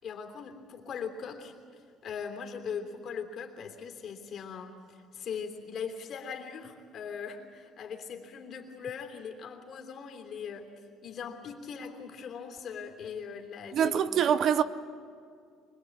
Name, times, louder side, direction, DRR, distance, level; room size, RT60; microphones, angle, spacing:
voice 1, 0.0-10.7 11.0-14.4, left 6 dB, 45° left, 3.2 m, -40 dB
voice 2, 13.7-14.6, right 8 dB, 45° right, 0.7 m, -24 dB
25.5 x 21.0 x 8.6 m
cardioid pair, 155°, 0 cm